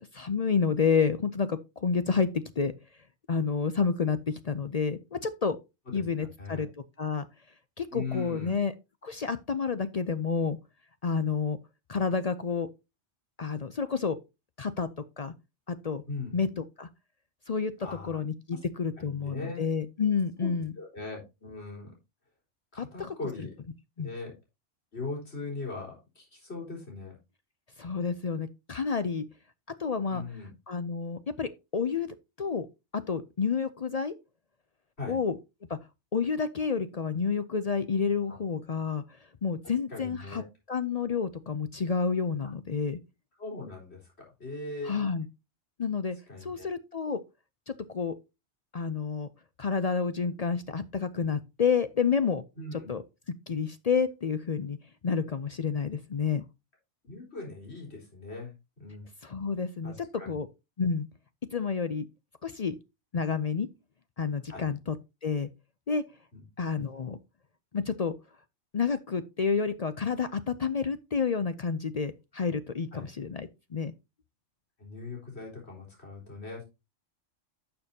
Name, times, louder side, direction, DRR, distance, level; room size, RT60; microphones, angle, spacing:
voice 1, 0.1-2.3 2.6-2.7 3.3-5.6 5.9-6.7 7.0-7.3 7.8-8.7 9.0-10.6 11.0-11.6 11.9-12.7 13.4-14.2 14.6-14.9 15.2-15.3 15.7-16.0 16.3-16.9 17.5-17.7 18.0-20.7 22.8-23.1 24.0-24.1 27.8-29.2 29.8-30.2 30.7-32.7 32.9-34.1 35.1-35.4 35.7-35.8 36.1-39.0 39.4-40.4 40.7-43.0 44.8-45.3 45.8-47.2 47.7-48.2 48.7-49.3 49.6-52.4 52.9-53.0 53.5-54.8 55.0-56.4 59.2-60.5 60.8-61.1 61.5-62.1 62.4-62.8 63.1-63.7 64.2-65.0 65.2-65.5 65.9-66.0 66.6-67.2 67.7-68.1 68.7-73.9, left 5 dB, 45° left, 0.5 m, -29 dB
voice 2, 5.9-6.6 7.9-8.5 16.1-16.4 17.8-18.2 19.0-19.6 20.4-21.9 22.7-23.5 24.0-24.3 24.9-27.2 30.1-30.5 35.0-35.2 38.3-38.4 39.9-40.5 43.4-45.1 46.3-46.7 52.6-52.9 57.0-59.1 59.8-60.3 64.5-64.6 66.3-66.4 72.9-73.1 74.8-76.6, left 3 dB, 65° left, 4.6 m, -40 dB
12.0 x 6.8 x 2.8 m
omnidirectional pair, 1.2 m